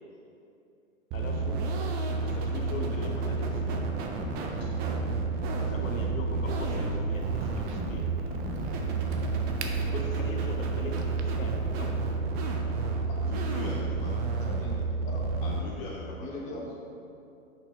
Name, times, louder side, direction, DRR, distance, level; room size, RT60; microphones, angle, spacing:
voice 1, 1.1-1.6 2.2-3.8 5.7-8.0 9.9-11.9, left 2 dB, 70° left, 1 dB, 1.2 m, -40 dB
sound 1, 1.1-15.6, right 3 dB, 20° right, 0.6 m, -30 dB
Crack, 7.1-12.2, right 5 dB, 55° right, 0.9 m, -47 dB
voice 2, 13.1-14.3 15.4-16.5 16.7-16.8, left 3 dB, 35° left, -3 dB, 0.8 m, -41 dB
voice 3, 14.3-15.4 16.2-16.8, left 2 dB, 20° left, -2 dB, 1.2 m, -41 dB
6.9 x 5.5 x 4.9 m, 2.6 s
figure-of-eight pair, 110°, 41 cm